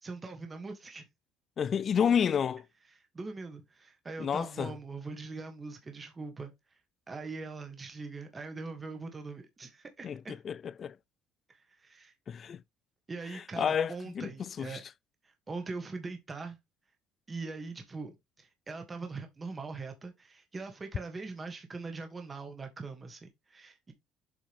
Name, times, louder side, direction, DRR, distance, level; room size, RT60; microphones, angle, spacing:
voice 1, 0.0-1.0 3.0-6.5 7.1-10.4 11.5-12.1 13.1-14.8 15.2-16.6 17.3-18.1 18.4-23.9, right 3 dB, 20° right, 1.5 m, -42 dB
voice 2, 1.6-2.6 4.2-4.7 10.0-11.0 12.3-12.6 13.3-14.3 14.6-14.8, left 7 dB, 35° left, 0.3 m, -30 dB
7.4 x 4.6 x 3.6 m
cardioid pair, 140°, 0 cm